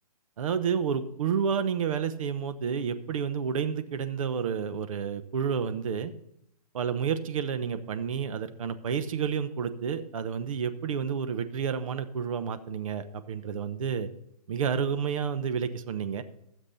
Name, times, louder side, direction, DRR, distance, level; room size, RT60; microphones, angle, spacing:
voice 1, 0.4-6.1 6.7-14.1 14.5-16.2, right 7 dB, 55° right, 10 dB, 1.0 m, -30 dB
13.0 x 7.5 x 4.1 m, 0.78 s
hypercardioid pair, 135°, 20 cm